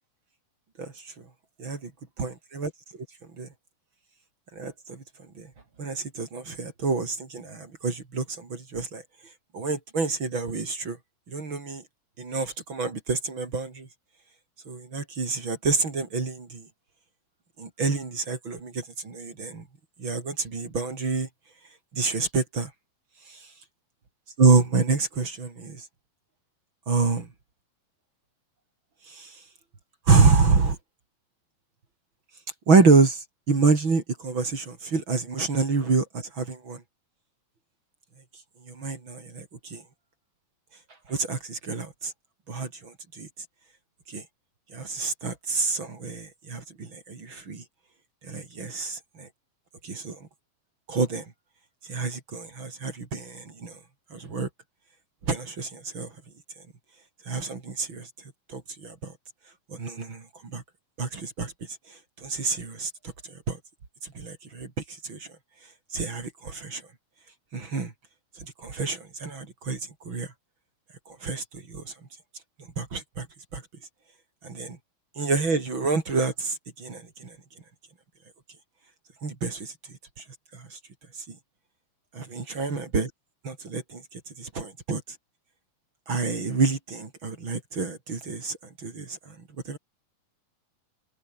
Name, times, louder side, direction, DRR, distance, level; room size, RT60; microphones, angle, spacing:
voice 1, 1.6-1.9 2.2-2.7 3.4-3.5 4.6-5.0 5.4-5.5 5.8-9.0 9.5-11.0 11.3-11.8 12.2-13.9 14.7-16.6 17.6-19.6 20.0-21.3 21.9-22.7 24.4-25.8 26.9-27.3 29.1-29.3 30.1-30.8 32.7-36.8 38.7-39.4 39.7-39.8 41.1-42.1 42.5-43.3 44.1-44.2 44.7-47.6 48.3-49.3 49.8-50.2 50.9-51.3 51.9-53.7 54.1-54.5 55.3-56.1 57.3-58.1 58.5-59.1 59.7-60.2 60.5-60.6 61.0-61.5 62.2-62.9 63.5-63.6 64.2-64.7 65.0-65.3 65.9-66.8 67.5-67.9 68.6-69.8 70.1-70.3 71.1-71.9 72.8-73.3 73.5-73.6 74.4-74.8 75.2-77.3 79.2-79.7 80.5-80.8 81.3-81.4 82.1-83.1 83.4-84.0 84.4-85.0 86.1-89.2 89.7-89.8, right 4 dB, 35° right, 3.9 m, -27 dB
omnidirectional pair, 4.0 m